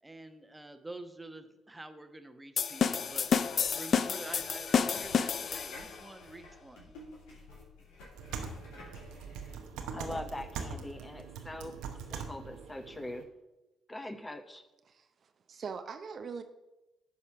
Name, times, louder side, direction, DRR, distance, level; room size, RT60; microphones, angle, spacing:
voice 1, 0.0-6.9, right 2 dB, 15° right, 1.1 m, -48 dB
sound 1, 2.6-6.0, left 7 dB, 55° left, 0.4 m, -30 dB
sound 2, 3.1-9.6, left 2 dB, 75° left, 2.6 m, -52 dB
sound 3, 8.1-13.2, right 6 dB, 75° right, 0.9 m, -42 dB
voice 2, 9.9-11.8 12.1-13.3 13.9-14.6, left 1 dB, 20° left, 1.0 m, -42 dB
voice 3, 15.5-16.4, right 5 dB, 50° right, 0.7 m, -41 dB
11.0 x 4.3 x 5.8 m
hypercardioid pair, 50°, 0 cm